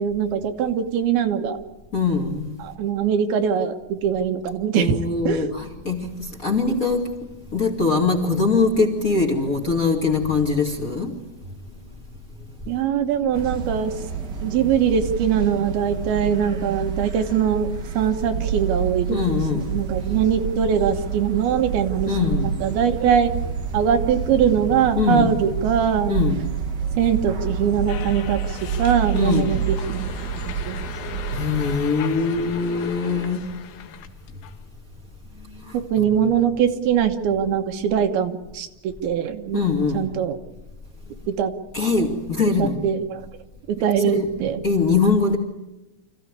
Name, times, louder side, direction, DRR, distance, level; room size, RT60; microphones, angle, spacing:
voice 1, 0.0-1.6 2.6-5.0 5.2-5.5 12.7-14.0 14.4-19.2 19.5-23.3 23.7-26.2 27.0-30.0 30.5-30.8 35.9-39.6 39.9-40.4 41.3-41.5 42.6-43.2 43.7-44.6, right 8 dB, 85° right, 3.2 m, -22 dB
voice 2, 1.9-2.6 4.7-7.3 7.5-11.2 18.0-18.1 19.1-19.8 22.1-22.6 24.9-25.4 26.1-26.5 29.1-29.7 31.3-33.5 35.5-36.3 39.5-40.1 41.7-42.8 44.0-45.4, left 4 dB, 30° left, 2.0 m, -23 dB
sound 1, 13.3-31.8, right 6 dB, 60° right, 1.1 m, -28 dB
sound 2, 27.9-34.5, left 9 dB, 85° left, 3.0 m, -38 dB
26.0 x 15.5 x 9.7 m
omnidirectional pair, 4.3 m